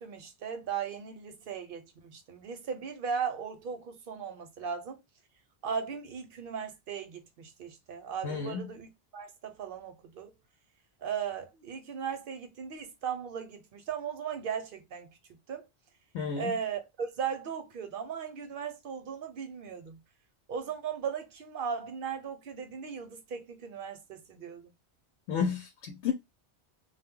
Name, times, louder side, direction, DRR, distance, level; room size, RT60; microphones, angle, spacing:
voice 1, 0.0-5.0 5.6-10.3 11.0-15.7 16.4-20.0 20.5-24.7, right 7 dB, 55° right, 0.8 m, -37 dB
voice 2, 8.2-8.7 16.1-16.5 25.3-26.1, left 6 dB, 85° left, 0.9 m, -31 dB
2.1 x 2.1 x 3.6 m
omnidirectional pair, 1.1 m